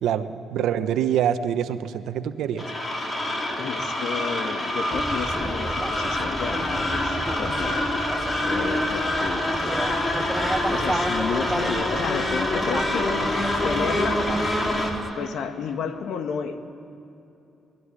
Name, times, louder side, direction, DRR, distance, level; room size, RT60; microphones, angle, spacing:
voice 1, 0.0-2.7, right 9 dB, 80° right, 10 dB, 1.1 m, -25 dB
sound 1, 2.6-14.9, left 1 dB, 30° left, 4.5 m, -26 dB
voice 2, 3.6-7.9 8.4-10.3 10.7-13.2 13.6-14.3 15.1-16.6, left 6 dB, 75° left, 7 dB, 1.9 m, -32 dB
sound 2, 4.9-15.1, right 2 dB, 10° right, 0.8 m, -33 dB
26.5 x 20.5 x 9.9 m, 2.8 s
cardioid pair, 90°, 0 cm